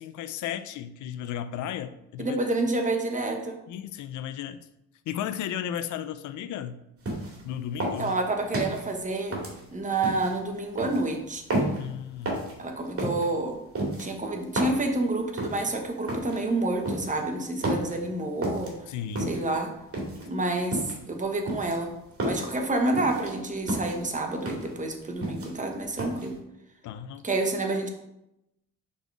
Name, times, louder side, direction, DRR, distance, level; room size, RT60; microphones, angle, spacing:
voice 1, 0.0-2.4 3.7-4.7 5.1-6.8 7.4-8.1 11.8-12.5 18.9-19.3 26.8-27.2, left 10 dB, 75° left, 12 dB, 0.5 m, -34 dB
voice 2, 2.2-3.6 8.0-9.4 9.7-11.4 12.6-13.6 14.0-18.7 19.3-19.7 20.3-21.9 22.2-26.3 27.2-27.9, right 2 dB, 25° right, 3 dB, 1.1 m, -28 dB
sound 1, 7.0-7.4 7.8-8.8 9.3-10.3 10.8-11.0 11.5-11.8 12.2-12.5 13.0-13.2 13.7-14.8 15.4-15.6 16.1-16.4 16.8-17.2 17.6-18.0 18.4-18.7 19.1-19.5 19.9-20.3 20.7-21.1 21.5-22.5 22.9-23.3 23.7-24.0 24.4-24.7 25.0-25.7 26.0-26.3, right 1 dB, 50° right, 2.4 m, -31 dB
5.3 x 4.1 x 4.8 m, 0.86 s
cardioid pair, 90°, 30 cm